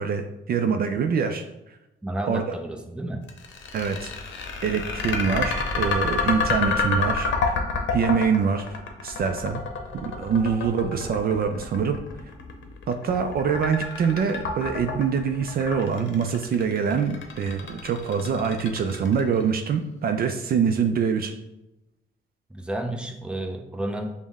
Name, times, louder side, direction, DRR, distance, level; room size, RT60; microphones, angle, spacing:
voice 1, 0.0-1.4 2.3-2.4 3.7-4.1 4.6-7.5 7.9-8.7 9.0-9.6 9.9-12.0 12.9-21.3, right 6 dB, 50° right, 6 dB, 0.4 m, -24 dB
voice 2, 2.0-3.2 22.5-24.1, right 1 dB, 5° right, 2 dB, 0.6 m, -31 dB
sound 1, 3.3-19.4, left 4 dB, 70° left, 0.7 m, -28 dB
5.2 x 2.1 x 3.5 m, 0.90 s
cardioid pair, 90°, 20 cm